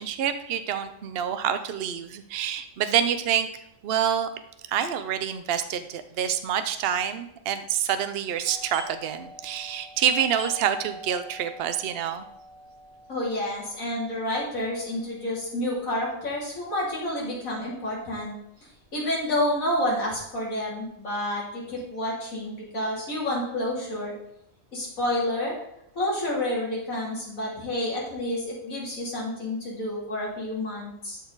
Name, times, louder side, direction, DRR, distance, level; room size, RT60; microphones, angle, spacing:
voice 1, 0.0-3.5 3.8-4.3 4.7-12.2, right 9 dB, 55° right, 10 dB, 0.8 m, -27 dB
Doorbell, 8.4-17.8 18.0-18.1 18.8-19.1 19.4-20.8, equal, 15° right, 1.8 m, -45 dB
voice 2, 13.1-18.3 18.9-24.1 24.7-25.5 25.9-31.2, left 1 dB, 75° left, -5 dB, 3.3 m, -29 dB
12.5 x 4.2 x 3.9 m, 0.78 s
omnidirectional pair, 1.4 m